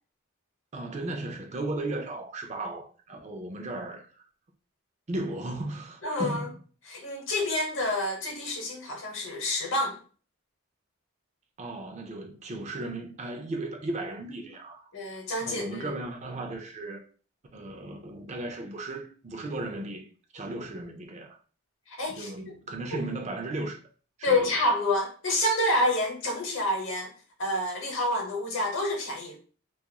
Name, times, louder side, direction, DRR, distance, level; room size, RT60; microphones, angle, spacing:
voice 1, 0.7-4.1 5.1-6.5 11.6-14.9 15.4-17.1 17.5-20.1 20.3-21.4 22.1-23.8 24.2-24.5, right 2 dB, 35° right, 0.4 m, -36 dB
voice 2, 6.0-6.5 6.9-10.0 14.9-15.9 21.9-22.3 22.9-23.0 24.2-27.1 27.4-29.4, left 1 dB, 65° left, 0.9 m, -28 dB
2.9 x 2.4 x 2.2 m
head